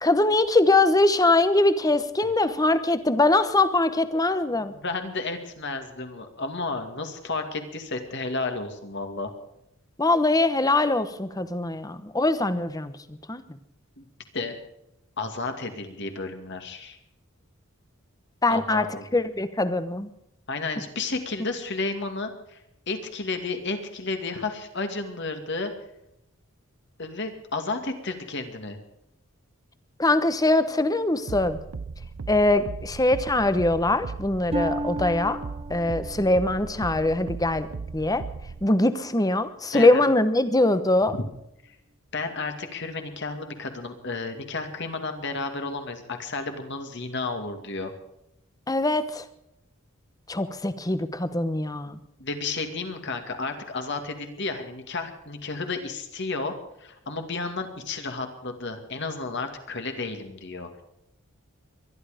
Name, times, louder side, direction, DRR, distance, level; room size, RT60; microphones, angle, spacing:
voice 1, 0.0-4.7 10.0-12.9 13.3-13.4 18.4-18.8 19.1-20.1 30.0-31.6 32.3-35.4 35.7-37.7 37.9-38.2 38.6-41.1 48.7-49.2 50.3-52.0, left 2 dB, 15° left, 12 dB, 1.0 m, -22 dB
voice 2, 4.5-9.3 14.0-14.1 14.3-14.5 15.2-17.0 18.5-19.0 20.5-25.7 27.0-28.8 39.7-40.0 41.1-41.2 42.1-47.9 52.2-56.5 56.8-60.8, left 3 dB, 55° left, 6 dB, 2.3 m, -32 dB
sound 1, 31.3-38.7, right 4 dB, 85° right, 0.6 m, -37 dB
Harp, 34.5-38.3 38.8-39.2 39.8-40.0, right 1 dB, 30° right, 0.7 m, -35 dB
23.0 x 11.5 x 5.1 m, 0.83 s
head